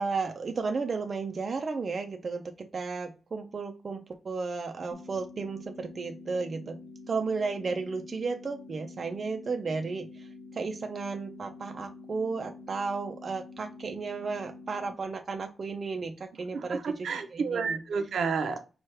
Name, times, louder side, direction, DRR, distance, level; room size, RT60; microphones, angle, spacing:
voice 1, 0.0-6.8 7.1-10.1 10.5-16.8 17.3-17.8, right 4 dB, 40° right, 5 dB, 0.5 m, -33 dB
sound 1, 4.9-14.9, left 3 dB, 55° left, 1.3 m, -47 dB
voice 2, 16.5-18.6, right 5 dB, 75° right, 7 dB, 0.7 m, -30 dB
4.7 x 2.4 x 4.3 m, 0.33 s
wide cardioid pair, 150°, 0 cm